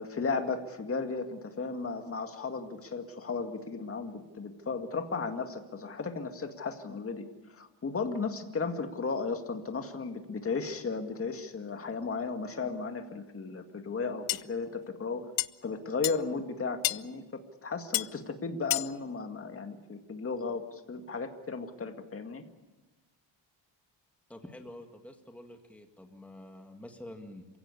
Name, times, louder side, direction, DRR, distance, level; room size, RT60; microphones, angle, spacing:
voice 1, 0.0-15.3 15.6-22.4, left 4 dB, 30° left, 6 dB, 2.1 m, -35 dB
sound 1, 14.3-14.4 15.4-15.5 16.0-16.2 16.8-17.0 17.9-18.1 18.7-18.9, left 17 dB, 85° left, 0.7 m, -28 dB
voice 2, 24.3-27.5, left 1 dB, 5° left, 4 dB, 1.9 m, -47 dB
27.5 x 17.0 x 8.4 m, 1.1 s
cardioid pair, 130°, 44 cm